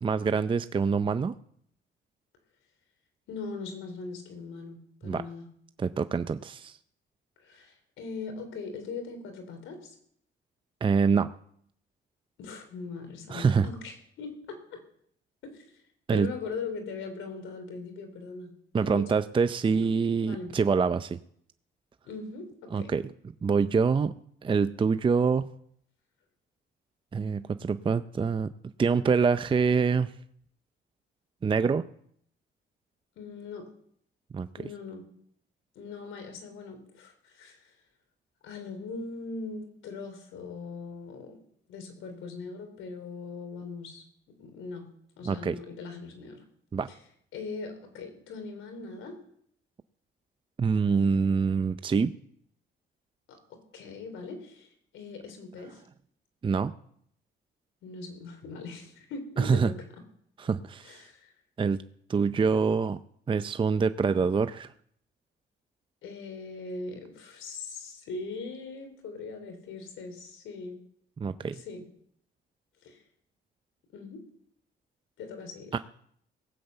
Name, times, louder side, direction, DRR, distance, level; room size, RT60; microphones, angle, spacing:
voice 1, 0.0-1.3 5.0-5.2 5.8-6.8 10.8-11.3 13.3-13.7 16.1-16.3 18.7-21.2 22.7-23.0 23.4-24.1 24.4-25.5 27.1-28.5 28.8-30.1 31.4-31.9 34.3-34.5 45.3-45.6 46.7-46.9 50.6-52.1 56.4-56.7 59.4-59.7 60.4-61.0 61.6-61.8 62.1-63.0 63.3-64.7 71.2-71.6 75.7-75.8, right 5 dB, 25° right, 12 dB, 0.5 m, -25 dB
voice 2, 3.3-5.5 7.4-10.0 12.4-14.8 15.4-15.7 16.1-18.5 18.8-19.1 19.7-19.9 20.2-20.5 22.1-22.9 33.2-33.7 34.6-35.0 35.8-37.8 38.4-41.4 41.7-44.0 44.4-44.9 45.2-46.4 47.3-49.2 53.3-55.8 57.8-59.8 60.8-61.3 66.0-70.8 71.5-71.8 72.8-73.0 73.9-74.2 75.2-75.8, left 4 dB, 85° left, 6 dB, 3.5 m, -40 dB
18.0 x 7.8 x 8.0 m, 0.67 s
cardioid pair, 90°, 20 cm